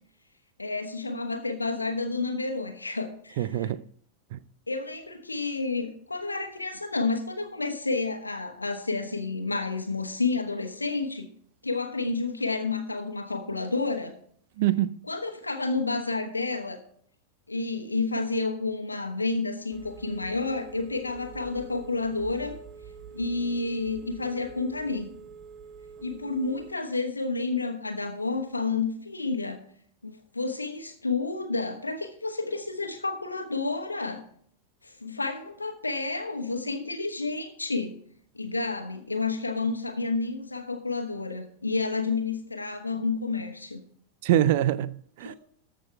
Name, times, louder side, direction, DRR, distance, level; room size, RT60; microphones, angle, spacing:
voice 1, 0.6-3.7 4.7-11.3 11.6-14.1 15.1-16.8 17.5-22.6 23.1-25.1 26.0-29.6 30.0-34.3 34.8-37.9 38.3-43.8 45.2-45.4, left 3 dB, 80° left, 1.1 m, -30 dB
voice 2, 3.4-3.8 4.3-4.4 14.6-14.9 44.2-45.4, right 12 dB, 50° right, 0.5 m, -24 dB
Telephone, 19.7-26.7, right 6 dB, 25° right, 1.0 m, -46 dB
14.0 x 6.2 x 4.6 m
figure-of-eight pair, 90°, 0 cm